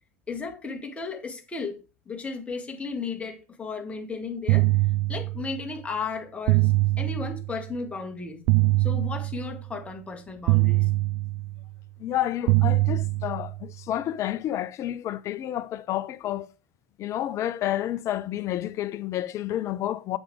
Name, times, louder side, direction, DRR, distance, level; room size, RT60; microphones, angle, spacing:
voice 1, 0.3-1.8 2.1-4.7 5.1-8.4 8.8-10.9, left 4 dB, 15° left, 2.0 m, -34 dB
sound 1, 4.5-5.7 6.5-7.7 8.5-9.7 10.5-11.7 12.5-13.7, right 19 dB, 55° right, 0.4 m, -23 dB
voice 2, 12.0-16.5 17.0-20.2, left 12 dB, 40° left, 0.7 m, -30 dB
7.5 x 6.3 x 4.8 m
hypercardioid pair, 85°, 8 cm